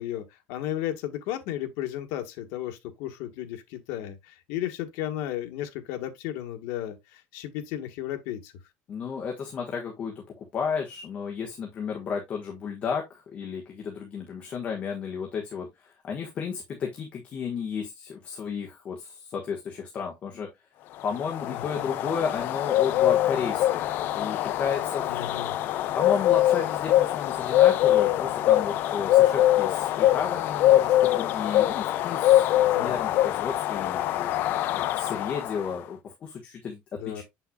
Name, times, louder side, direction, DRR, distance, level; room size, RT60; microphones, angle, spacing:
voice 1, 0.0-8.5 21.4-21.9 25.0-25.5 32.7-33.0 36.9-37.2, left 12 dB, 80° left, 1.4 m, -34 dB
voice 2, 8.9-20.5 21.0-25.1 25.9-36.8 37.1-37.2, left 6 dB, 30° left, 1.3 m, -33 dB
sound 1, 21.1-35.7, left 13 dB, 45° left, 0.5 m, -23 dB
7.9 x 5.7 x 2.3 m
cardioid pair, 175°, 5 cm